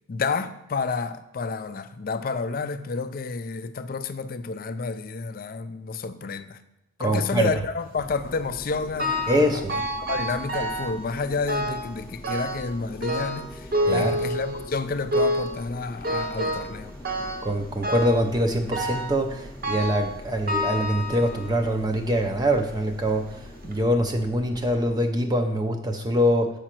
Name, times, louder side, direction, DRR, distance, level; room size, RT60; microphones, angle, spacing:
voice 1, 0.1-6.6 7.0-17.0, left 4 dB, 45° left, 0.4 m, -30 dB
voice 2, 7.0-7.5 9.3-9.7 13.9-14.2 17.4-26.5, equal, 20° right, 0.5 m, -24 dB
sound 1, 8.0-24.9, left 1 dB, 10° left, 0.7 m, -43 dB
sound 2, 9.0-9.4 9.7-11.0 11.5-11.9 12.2-12.7 13.0-14.7 15.1-15.6 16.0-16.7 17.1-17.5 17.8-18.3 18.7-19.2 19.6-20.1 20.5-21.5 22.2-22.3 23.1-23.2 23.6-23.7, equal, 45° right, 0.8 m, -28 dB
7.4 x 4.9 x 4.4 m
head